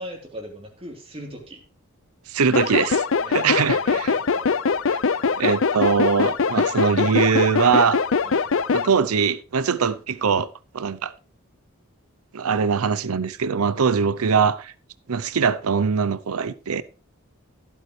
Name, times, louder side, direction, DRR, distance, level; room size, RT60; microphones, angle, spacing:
voice 1, 0.0-1.6 3.1-4.5 8.2-8.5, right 1 dB, 25° right, 3.4 m, -38 dB
voice 2, 2.3-3.0 3.3-3.8 4.9-5.0 5.4-8.0 8.7-10.5 10.7-11.1 12.3-14.7 15.1-16.8, right 6 dB, 85° right, 0.6 m, -22 dB
sound 1, 2.5-8.9, left 5 dB, 60° left, 0.5 m, -22 dB
16.0 x 8.8 x 3.2 m
head